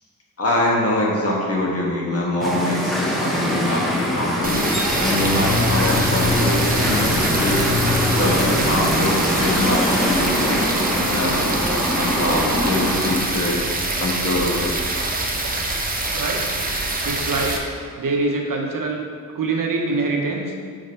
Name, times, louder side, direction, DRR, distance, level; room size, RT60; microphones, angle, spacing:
voice 1, 0.4-4.6 5.0-7.7 8.2-10.7 11.1-11.5 12.0-13.6 14.0-14.7, left 1 dB, 45° left, -3 dB, 1.3 m, -23 dB
sound 1, 2.4-13.2, equal, ahead, 0.9 m, -23 dB
sound 2, 4.4-17.6, right 2 dB, 25° right, 0.7 m, -25 dB
sound 3, 5.2-8.9, left 4 dB, 70° left, 0.9 m, -26 dB
voice 2, 16.1-16.4 17.0-17.7 18.0-19.0 19.3-20.5, right 3 dB, 70° right, 0 dB, 0.9 m, -24 dB
5.1 x 4.0 x 5.5 m, 2.1 s
wide cardioid pair, 110°, 34 cm